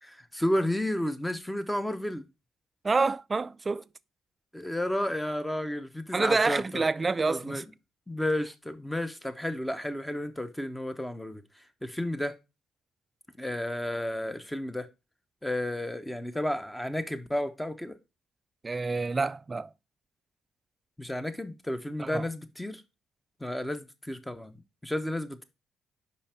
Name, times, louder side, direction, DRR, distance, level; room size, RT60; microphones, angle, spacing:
voice 1, 0.0-2.3 4.5-6.9 7.3-7.6 8.1-11.4 11.8-12.4 13.4-14.9 15.4-18.0 21.0-22.8 23.4-24.6 24.8-25.4, left 1 dB, 5° left, 0.9 m, -32 dB
voice 2, 2.8-3.8 6.1-7.6 18.6-19.7 22.0-22.3, right 3 dB, 30° right, 0.3 m, -27 dB
5.5 x 5.2 x 4.3 m
cardioid pair, 90°, 0 cm